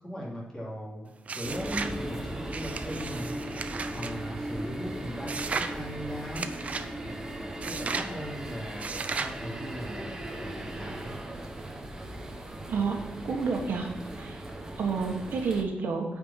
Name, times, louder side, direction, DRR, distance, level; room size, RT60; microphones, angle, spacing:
voice 1, 0.0-3.4 3.9-6.4 7.0-8.9 9.2-10.1 10.4-11.1, equal, 20° left, -5 dB, 3.0 m, -39 dB
sound 1, 1.3-2.0 2.5-4.1 5.3-5.7 6.3-6.9 7.6-8.1 8.8-9.4, right 4 dB, 40° right, 0.6 m, -35 dB
sound 2, 1.4-15.6, right 1 dB, 15° right, 1.0 m, -38 dB
voice 2, 13.2-13.9 14.1-14.4 14.8-16.0, right 5 dB, 70° right, 2 dB, 1.5 m, -29 dB
8.9 x 5.2 x 5.7 m, 1.1 s
wide cardioid pair, 140°, 4 cm